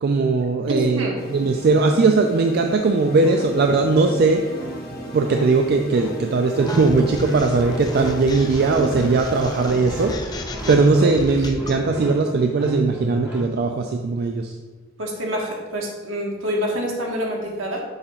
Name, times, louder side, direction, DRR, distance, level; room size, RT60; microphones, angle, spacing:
voice 1, 0.0-4.5 5.1-10.2 10.7-14.5, right 3 dB, 55° right, 4 dB, 0.4 m, -19 dB
voice 2, 0.7-1.2 11.0-11.1 15.0-17.8, equal, 75° right, -1 dB, 1.4 m, -26 dB
sound 1, 1.2-11.3, right 1 dB, 55° left, 1.3 m, -37 dB
sound 2, 3.0-13.6, equal, 15° right, 1.3 m, -34 dB
sound 3, 6.7-11.8, left 2 dB, 20° left, 0.5 m, -34 dB
6.5 x 2.9 x 5.5 m, 1.3 s
head